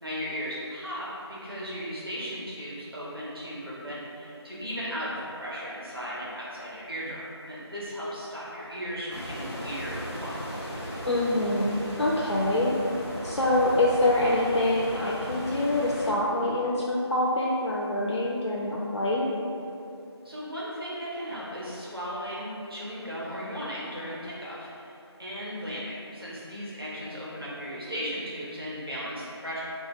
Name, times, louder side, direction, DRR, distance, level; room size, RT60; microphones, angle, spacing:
voice 1, 0.0-10.4 20.2-24.9 25.2-29.6, equal, 55° right, -7 dB, 0.9 m, -36 dB
sound 1, 9.1-16.1, equal, 30° left, 0.7 m, -37 dB
voice 2, 11.0-12.7 13.2-19.3, left 1 dB, 90° left, -5 dB, 0.5 m, -25 dB
3.1 x 2.3 x 4.2 m, 2.7 s
figure-of-eight pair, 175°, 14 cm